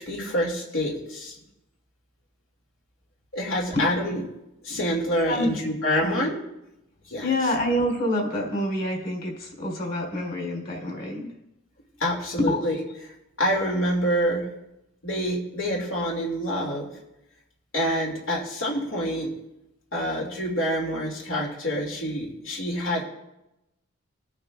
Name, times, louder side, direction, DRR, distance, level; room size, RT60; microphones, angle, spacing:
voice 1, 0.0-1.3 3.3-4.2 4.6-6.3 7.1-7.3 12.0-12.8 13.4-14.4 15.0-16.9 17.7-19.3 19.9-23.0, equal, 75° left, -2 dB, 2.4 m, -26 dB
voice 2, 5.2-5.5 5.9-6.3 7.2-11.3 12.4-12.6, left 1 dB, 45° left, -1 dB, 3.5 m, -27 dB
20.0 x 8.7 x 2.4 m, 0.89 s
head